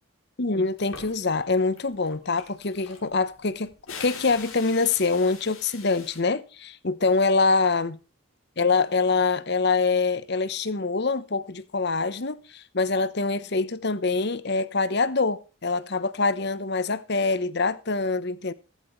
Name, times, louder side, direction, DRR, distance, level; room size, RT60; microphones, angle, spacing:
voice 1, 0.4-3.7 4.0-8.0 8.6-18.5, left 4 dB, 50° left, 0.9 m, -25 dB
sound 1, 0.8-1.4 1.7-6.2, left 5 dB, 80° left, 5.6 m, -42 dB
15.0 x 15.0 x 3.2 m
head